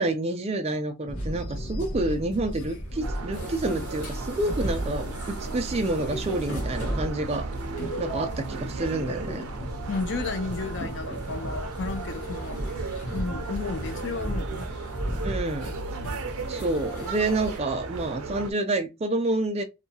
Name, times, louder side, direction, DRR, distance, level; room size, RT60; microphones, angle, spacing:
voice 1, 0.0-7.5 8.0-9.4 15.2-15.7 16.5-19.6, right 2 dB, 30° right, 0.4 m, -28 dB
sound 1, 1.1-17.6, equal, 80° left, 0.9 m, -35 dB
sound 2, 3.0-18.5, right 3 dB, 85° right, 0.5 m, -36 dB
voice 2, 9.9-12.6 13.1-14.7, left 4 dB, 55° left, 0.5 m, -33 dB
2.7 x 2.3 x 2.7 m
head